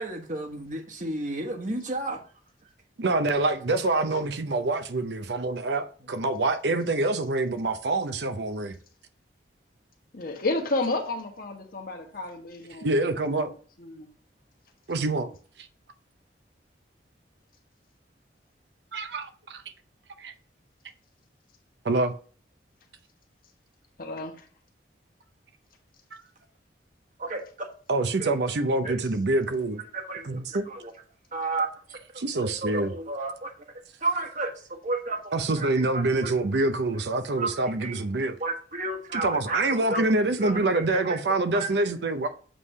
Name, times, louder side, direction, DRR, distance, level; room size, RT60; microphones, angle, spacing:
voice 1, 0.0-2.2 27.2-27.7 28.2-28.3 28.8-29.0 29.9-30.2 30.5-30.9 31.3-33.5 34.0-35.7 35.9-36.3 37.4-37.5 37.8-38.0 38.4-40.0 40.4-41.2 41.5-41.7, right 2 dB, 45° right, 1.3 m, -32 dB
voice 2, 3.0-8.7 12.8-13.5 14.9-15.3 18.9-19.6 20.2-20.3 21.8-22.1 27.9-29.8 30.2-30.6 32.2-32.9 35.3-38.4 39.1-42.3, right 2 dB, 65° right, 0.6 m, -26 dB
voice 3, 10.1-13.5 13.8-14.1 24.0-24.4, left 2 dB, 50° left, 1.2 m, -32 dB
7.5 x 3.3 x 5.5 m
head